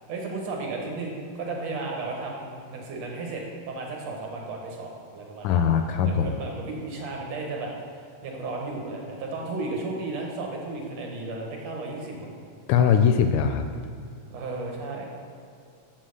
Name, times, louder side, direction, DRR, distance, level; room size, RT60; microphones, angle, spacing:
voice 1, 0.1-5.7 6.0-12.4 14.3-15.0, right 3 dB, 65° right, -1 dB, 2.3 m, -34 dB
voice 2, 5.4-6.3 12.7-13.6, left 7 dB, 80° left, 7 dB, 1.8 m, -21 dB
7.7 x 6.3 x 6.4 m, 2.5 s
omnidirectional pair, 3.5 m